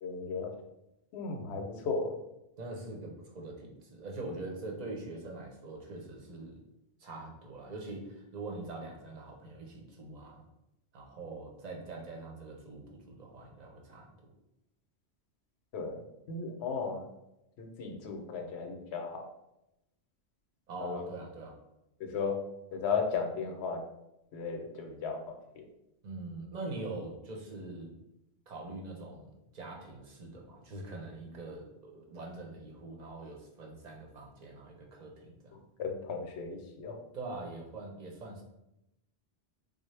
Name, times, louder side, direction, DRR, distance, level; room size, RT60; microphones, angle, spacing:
voice 1, 0.0-0.5 1.1-2.1 15.7-16.0 16.3-17.0 17.6-19.3 20.8-21.0 22.0-22.3 22.7-23.8 24.3-25.2 25.6-25.7 35.5-37.0, left 5 dB, 75° left, 3 dB, 0.8 m, -35 dB
voice 2, 2.6-6.6 7.0-10.4 10.9-14.3 20.7-21.6 26.0-27.9 28.5-35.6 37.1-38.4, right 2 dB, 45° right, 0 dB, 0.7 m, -43 dB
3.8 x 2.0 x 3.2 m, 0.87 s
omnidirectional pair, 1.1 m